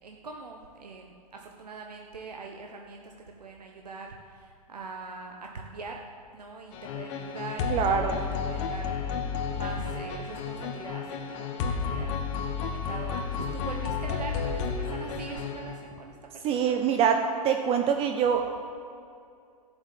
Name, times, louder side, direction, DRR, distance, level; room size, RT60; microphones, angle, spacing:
voice 1, 0.0-3.1 3.4-6.0 6.3-7.8 8.1-12.2 12.6-16.8, right 4 dB, 80° right, 1 dB, 1.2 m, -42 dB
sound 1, 6.7-15.9, left 5 dB, 45° left, 1.3 m, -32 dB
voice 2, 7.7-8.2 16.4-17.2 17.4-18.5, right 8 dB, 30° right, 4 dB, 0.9 m, -24 dB
12.0 x 7.2 x 8.5 m, 2.4 s
hypercardioid pair, 110°, 20 cm